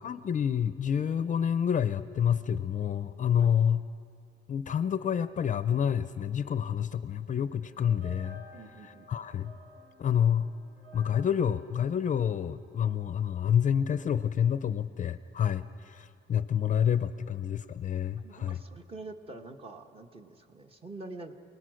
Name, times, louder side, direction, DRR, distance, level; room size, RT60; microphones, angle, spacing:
voice 1, 0.0-3.8 4.5-8.4 9.1-9.5 10.0-10.5 10.9-18.6, left 8 dB, 40° left, 13 dB, 0.5 m, -28 dB
sound 1, 7.6-12.9, equal, 70° right, 5.0 m, -54 dB
voice 2, 8.5-9.3 18.2-21.3, right 3 dB, 30° right, 5 dB, 1.3 m, -46 dB
28.0 x 19.5 x 6.4 m, 2.4 s
cardioid pair, 145°, 20 cm